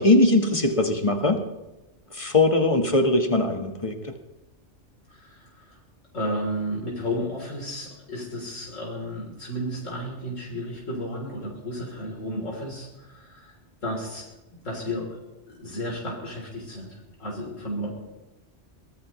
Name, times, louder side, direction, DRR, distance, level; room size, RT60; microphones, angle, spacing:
voice 1, 0.0-1.4 2.1-4.1, left 2 dB, 25° left, 5 dB, 1.4 m, -21 dB
voice 2, 5.1-5.8 6.1-13.5 13.8-14.3 14.6-15.2 15.5-17.9, equal, 80° left, -2 dB, 3.9 m, -33 dB
23.0 x 19.5 x 3.1 m, 1.0 s
omnidirectional pair, 1.3 m